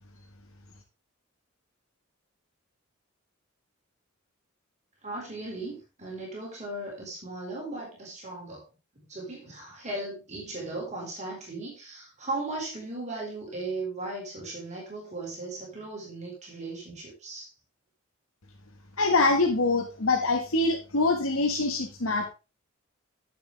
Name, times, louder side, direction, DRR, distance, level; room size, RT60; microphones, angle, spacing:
voice 1, 5.0-8.6 9.1-17.5, right 2 dB, 35° right, -3 dB, 4.4 m, -37 dB
voice 2, 19.0-22.3, left 3 dB, 80° left, 2 dB, 1.6 m, -24 dB
10.5 x 7.6 x 3.4 m, 0.30 s
head